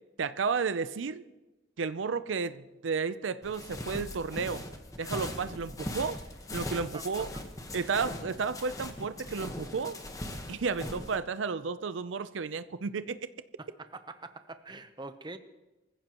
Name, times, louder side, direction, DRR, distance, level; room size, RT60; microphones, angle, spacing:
voice 1, 0.2-1.2 1.8-4.6 5.0-6.2 6.5-7.3 7.7-10.0 10.5-13.2, right 5 dB, 85° right, 0.5 m, -32 dB
sound 1, 3.4-11.2, left 1 dB, 20° left, 1.2 m, -40 dB
voice 2, 6.9-7.4 13.6-15.4, right 3 dB, 25° right, 0.8 m, -45 dB
24.0 x 15.0 x 3.0 m
head